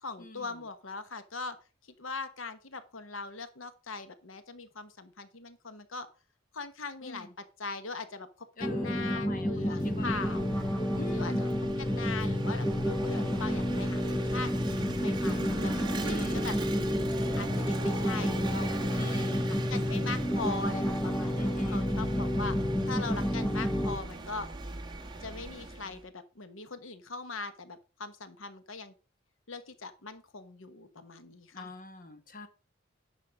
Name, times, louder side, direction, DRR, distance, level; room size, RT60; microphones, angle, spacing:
voice 1, 0.0-1.6 2.0-6.1 6.5-7.3 7.6-8.3 8.6-10.6 11.1-11.5 11.8-14.5 15.0-16.6 17.4-19.4 19.7-22.6 22.8-24.5 25.2-28.9 29.5-31.7, left 4 dB, 85° left, 1.2 m, -41 dB
voice 2, 7.0-7.3 8.6-10.1 10.9-11.5 16.0-16.5 19.0-19.5 21.3-21.8 31.5-32.5, left 2 dB, 45° left, 1.4 m, -44 dB
sound 1, 8.6-24.0, equal, 15° left, 0.8 m, -30 dB
Vehicle / Engine, 9.4-26.0, right 2 dB, 20° right, 1.4 m, -39 dB
10.5 x 6.5 x 5.3 m
head